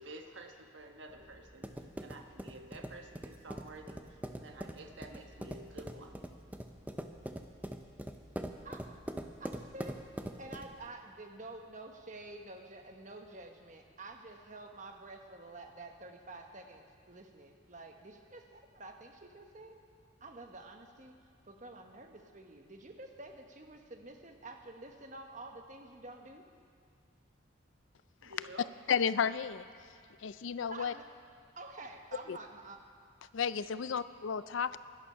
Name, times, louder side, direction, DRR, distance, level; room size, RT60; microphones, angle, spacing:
voice 1, 0.0-1.7 2.0-6.3 28.2-28.7, right 2 dB, 70° right, 4 dB, 1.2 m, -50 dB
sound 1, 1.1-10.9, right 1 dB, 10° right, 0.5 m, -43 dB
voice 2, 9.4-10.1 10.4-19.8 20.2-21.2 21.4-26.5 30.7-31.1 31.5-32.8, right 2 dB, 40° right, 4 dB, 1.1 m, -49 dB
voice 3, 28.9-29.7 30.2-30.9 32.3-32.4 33.3-34.8, left 7 dB, 75° left, 15 dB, 0.4 m, -32 dB
17.5 x 12.0 x 5.6 m, 2.1 s
head